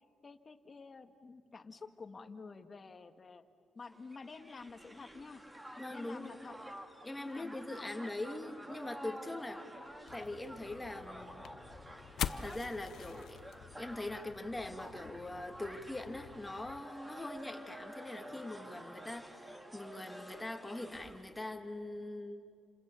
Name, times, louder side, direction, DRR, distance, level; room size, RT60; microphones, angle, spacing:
voice 1, 0.2-3.4 3.8-5.4 5.9-6.5 7.2-7.9, left 4 dB, 35° left, 8 dB, 1.6 m, -50 dB
Crowd, 3.9-21.3, equal, 10° right, 2.0 m, -50 dB
voice 2, 5.8-6.4 7.0-9.7 10.1-11.4 12.2-13.4 13.8-22.5, left 2 dB, 10° left, 5 dB, 2.2 m, -42 dB
sound 1, 10.1-16.8, left 9 dB, 75° left, 0.7 m, -45 dB
29.5 x 26.5 x 7.1 m, 2.4 s
cardioid pair, 95°, 0 cm